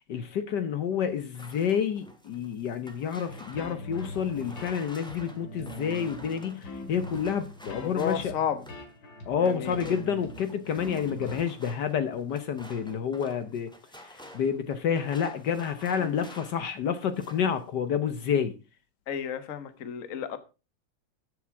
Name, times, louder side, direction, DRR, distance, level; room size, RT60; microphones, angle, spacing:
voice 1, 0.1-8.3 9.3-13.7 14.0-18.5, left 7 dB, 65° left, 1.5 m, -29 dB
sound 1, 1.2-8.9 9.4-16.7 17.0-17.5, equal, 5° left, 1.6 m, -50 dB
sound 2, 3.3-11.4, left 1 dB, 80° left, 2.9 m, -42 dB
voice 2, 7.8-8.7 9.4-9.7 16.0-16.2 19.1-20.4, left 8 dB, 50° left, 1.4 m, -32 dB
14.0 x 7.2 x 4.6 m
omnidirectional pair, 2.0 m